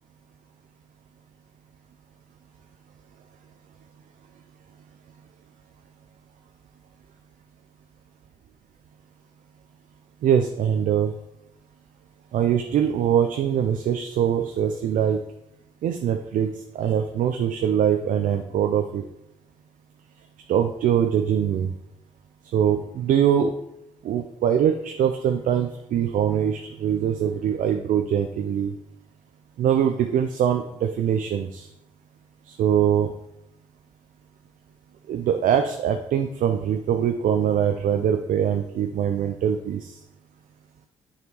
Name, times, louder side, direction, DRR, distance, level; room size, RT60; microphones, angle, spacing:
voice 1, 10.2-11.1 12.3-15.2 15.8-19.0 20.5-21.7 22.5-23.5 24.0-28.7 29.6-31.7 32.5-33.1 35.1-40.0, right 9 dB, 60° right, 5 dB, 0.5 m, -23 dB
9.5 x 4.1 x 3.0 m, 0.80 s
hypercardioid pair, 45°, 15 cm